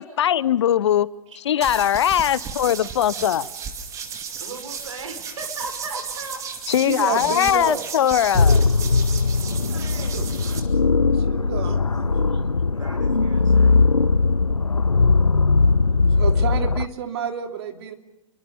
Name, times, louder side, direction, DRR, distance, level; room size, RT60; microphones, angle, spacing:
voice 1, 0.0-1.1 1.4-3.5 6.7-8.6, left 10 dB, 55° left, 0.8 m, -20 dB
sound 1, 1.6-10.6, right 6 dB, 15° right, 2.3 m, -34 dB
voice 2, 3.1-3.5 4.4-6.4 9.2-10.4 12.7-13.9, right 3 dB, 65° right, 6.6 m, -38 dB
voice 3, 6.8-7.9 10.0-10.3 11.1-12.1 16.2-17.9, right 8 dB, 45° right, 2.9 m, -30 dB
sound 2, 8.4-16.9, left 4 dB, 90° left, 0.7 m, -19 dB
29.5 x 23.5 x 5.3 m
figure-of-eight pair, 120°, 18 cm